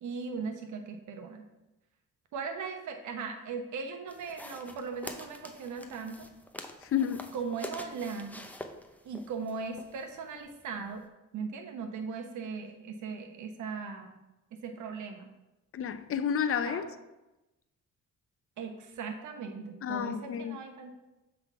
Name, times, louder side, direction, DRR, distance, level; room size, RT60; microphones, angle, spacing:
voice 1, 0.0-1.5 2.3-6.3 7.3-8.4 9.0-11.0 11.3-14.2 14.5-15.3 16.6-16.9 18.6-20.9, right 5 dB, 75° right, 1.0 m, -38 dB
sound 1, 4.1-11.0, left 1 dB, 5° left, 0.6 m, -46 dB
voice 2, 6.8-7.3 15.7-16.9 19.8-20.6, left 8 dB, 50° left, 0.5 m, -31 dB
7.2 x 3.8 x 4.6 m
cardioid pair, 90°, 30 cm